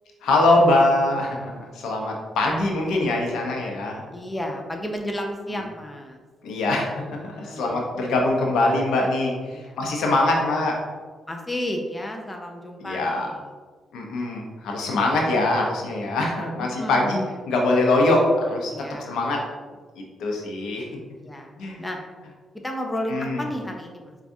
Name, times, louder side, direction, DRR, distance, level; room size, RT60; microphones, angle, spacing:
voice 1, 0.2-4.0 5.5-5.6 6.4-10.8 12.8-13.3 13.9-17.2 17.5-18.7 19.1-19.4 20.2-21.0 21.6-21.8 23.1-23.4, left 2 dB, 85° left, 0 dB, 0.6 m, -23 dB
voice 2, 4.1-6.2 7.2-7.9 9.5-9.8 11.3-13.5 14.1-14.3 16.6-17.5 18.7-19.2 21.1-21.5 21.8-22.0 22.6-24.2, equal, 15° left, 2 dB, 0.5 m, -32 dB
4.6 x 2.3 x 2.6 m, 1.4 s
cardioid pair, 85°, 0 cm